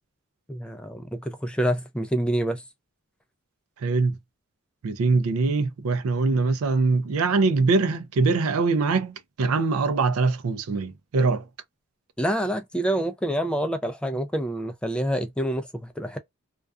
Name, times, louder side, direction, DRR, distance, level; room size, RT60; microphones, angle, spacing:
voice 1, 0.5-2.6 12.2-16.2, right 1 dB, 5° left, 0.3 m, -27 dB
voice 2, 3.8-4.1 4.8-11.4, right 4 dB, 80° right, 0.4 m, -23 dB
2.3 x 2.2 x 2.3 m
head